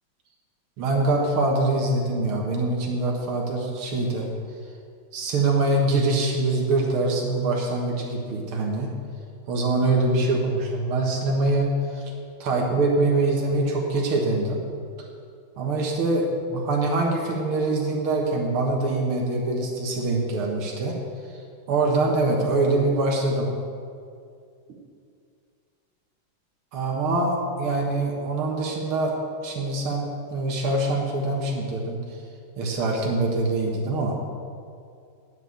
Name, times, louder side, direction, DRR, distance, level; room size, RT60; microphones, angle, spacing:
voice 1, 0.8-4.3 5.1-8.9 9.5-12.0 12.4-14.6 15.6-20.9 21.7-23.5 26.7-29.1 29.4-32.0 32.6-34.2, right 2 dB, 90° right, -1 dB, 2.3 m, -24 dB
9.5 x 7.4 x 8.5 m, 2.3 s
omnidirectional pair, 2.3 m